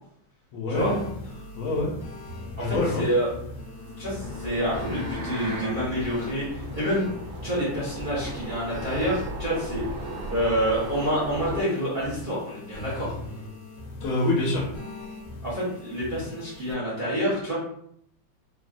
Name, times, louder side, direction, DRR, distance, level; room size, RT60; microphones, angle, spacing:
voice 1, 0.5-1.1 1.5-1.9 2.6-3.1 14.0-14.7, left 2 dB, 80° left, -3 dB, 1.5 m, -26 dB
sound 1, 0.7-16.7, left 2 dB, 65° left, 1.4 m, -40 dB
voice 2, 2.6-3.3 4.0-7.1 7.4-9.9 10.3-13.1 15.4-17.5, equal, 40° right, -8 dB, 0.7 m, -27 dB
sound 2, 3.2-5.8, left 2 dB, 65° right, 1.0 m, -38 dB
sound 3, 4.2-11.6, right 1 dB, 80° right, 1.4 m, -37 dB
3.5 x 2.0 x 2.5 m, 0.69 s
omnidirectional pair, 2.3 m